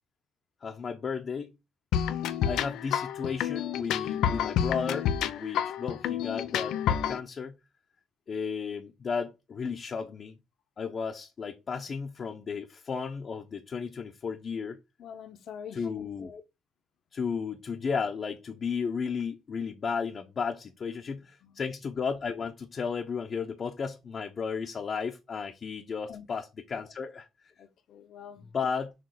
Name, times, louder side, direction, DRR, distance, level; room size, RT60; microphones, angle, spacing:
voice 1, 0.6-1.6 2.5-7.6 8.3-10.3 10.8-14.8 15.7-16.4 17.1-27.5 28.4-28.9, left 5 dB, 45° left, 1.0 m, -34 dB
sound 1, 1.9-7.2, left 9 dB, 90° left, 0.7 m, -29 dB
voice 2, 15.0-15.8 21.4-21.5 26.1-26.3 26.7-26.8 27.6-28.4, left 8 dB, 70° left, 1.3 m, -45 dB
6.8 x 3.4 x 4.8 m
cardioid pair, 90°, 0 cm